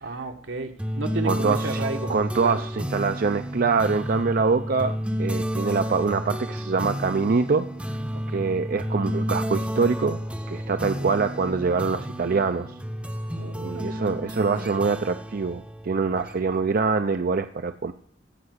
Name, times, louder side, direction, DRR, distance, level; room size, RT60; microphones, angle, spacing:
voice 1, 0.0-2.6 8.1-8.5 13.4-14.7, right 3 dB, 80° right, 1.6 m, -34 dB
sound 1, 0.8-16.7, equal, 5° right, 0.7 m, -31 dB
voice 2, 1.3-1.8 2.1-8.0 8.3-10.2 10.5-12.7 13.6-17.9, right 4 dB, 50° right, 0.5 m, -24 dB
16.0 x 5.8 x 8.0 m
head